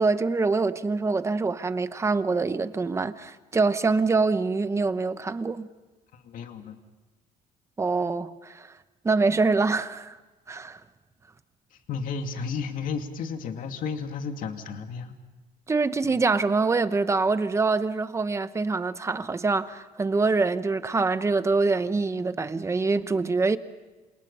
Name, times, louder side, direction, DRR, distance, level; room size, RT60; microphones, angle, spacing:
voice 1, 0.0-5.7 7.8-8.7 9.0-10.2 10.5-10.8 15.7-23.6, right 3 dB, 15° right, 0.9 m, -25 dB
voice 2, 6.1-6.8 11.7-15.1, left 5 dB, 55° left, 2.5 m, -33 dB
28.5 x 28.0 x 5.6 m
cardioid pair, 160°, 16 cm